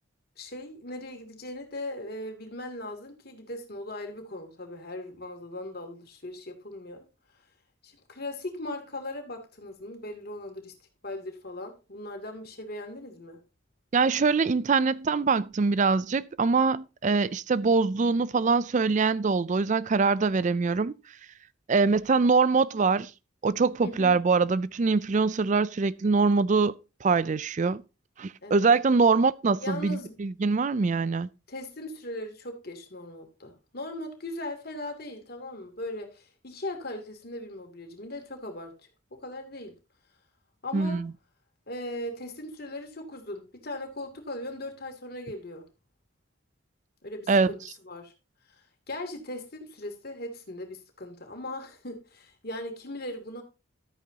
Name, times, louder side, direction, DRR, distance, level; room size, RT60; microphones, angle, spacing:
voice 1, 0.4-7.0 7.8-10.7 11.0-13.4 23.8-24.2 28.4-28.7 29.6-30.1 31.5-38.7 39.1-39.7 40.6-41.0 41.7-45.6 47.0-48.1 48.5-53.4, left 1 dB, 50° left, 2.7 m, -39 dB
voice 2, 13.9-20.9 21.7-23.1 23.4-26.7 27.0-27.8 28.2-31.3 40.7-41.1 47.3-47.5, right 4 dB, 35° right, 0.4 m, -23 dB
13.0 x 9.1 x 2.8 m
head